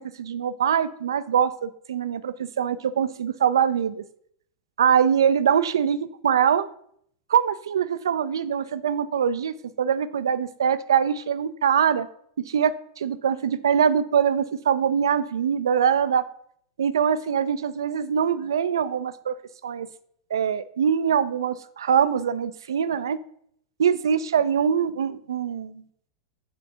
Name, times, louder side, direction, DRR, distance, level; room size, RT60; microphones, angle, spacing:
voice 1, 0.0-4.0 4.8-6.7 7.3-12.1 12.4-16.2 16.8-19.3 19.6-19.9 20.3-23.2 23.8-25.8, right 8 dB, 75° right, 13 dB, 0.4 m, -23 dB
7.3 x 3.5 x 5.5 m, 0.65 s
figure-of-eight pair, 95°, 2 cm